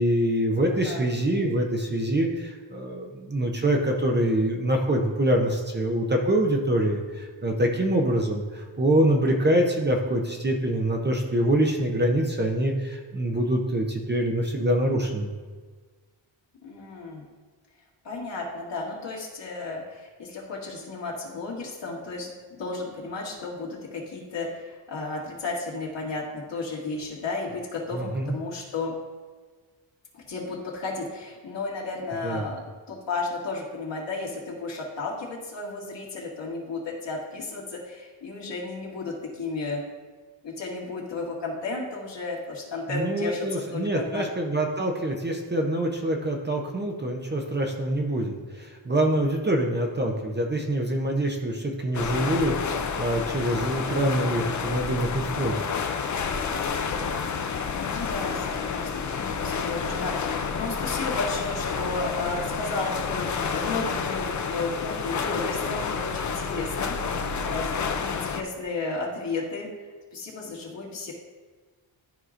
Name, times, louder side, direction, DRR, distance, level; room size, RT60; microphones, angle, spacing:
voice 1, 0.0-15.3 27.9-28.3 32.2-32.5 42.9-55.6, right 1 dB, 25° right, 1 dB, 0.6 m, -25 dB
voice 2, 0.6-1.1 16.6-17.3 18.0-28.9 30.1-39.8 40.4-43.5 43.7-44.3 57.8-66.9 67.2-69.7 70.1-71.1, left 3 dB, 65° left, -5 dB, 2.0 m, -33 dB
sound 1, 51.9-68.4, left 5 dB, 40° left, 0.5 m, -29 dB
12.5 x 4.7 x 2.5 m, 1.4 s
wide cardioid pair, 140°, 47 cm